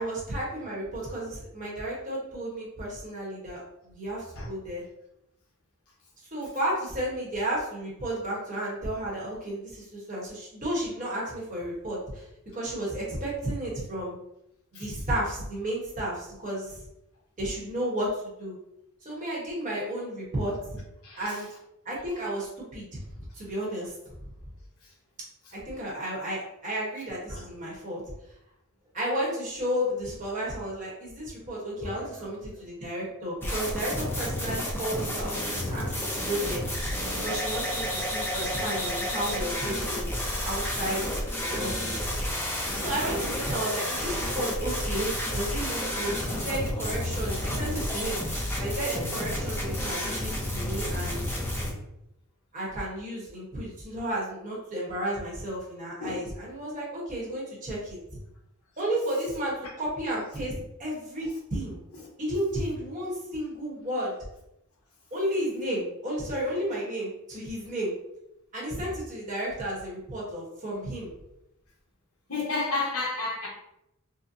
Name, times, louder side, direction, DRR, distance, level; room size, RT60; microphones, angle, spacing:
voice 1, 0.0-4.8 6.3-12.2 12.5-14.2 14.7-16.8 17.4-18.6 19.0-20.8 21.2-21.5 21.8-23.0 23.3-23.9 25.5-28.0 28.9-36.6 37.2-40.1 40.4-41.1 41.5-42.1 42.8-48.2 48.6-51.2 52.5-58.0 58.8-61.8 62.2-64.1 65.1-67.9 68.5-71.1, right 1 dB, 35° right, -5 dB, 1.0 m, -32 dB
voice 2, 21.0-21.4 27.3-27.4 31.7-32.6 56.0-56.3 68.8-68.9 72.3-73.5, left 3 dB, 75° left, -2 dB, 1.0 m, -33 dB
sound 1, 33.4-51.7, left 1 dB, 10° left, 0.5 m, -31 dB
3.9 x 2.1 x 2.6 m, 0.83 s
head